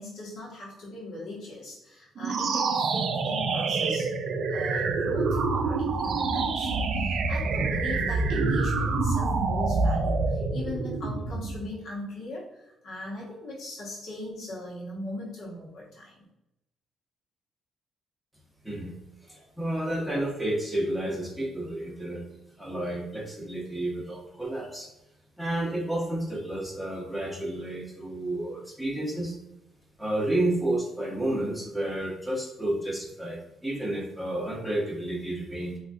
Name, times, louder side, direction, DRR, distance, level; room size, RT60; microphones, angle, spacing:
voice 1, 0.0-4.1 4.5-16.2, left 1 dB, 70° left, -4 dB, 0.9 m, -39 dB
sound 1, 2.2-11.7, right 3 dB, 60° right, 0.4 m, -27 dB
voice 2, 18.6-24.9 25.4-29.4 30.0-35.8, right 1 dB, ahead, -4 dB, 0.9 m, -31 dB
3.6 x 2.3 x 2.5 m, 0.88 s
cardioid pair, 100°, 0 cm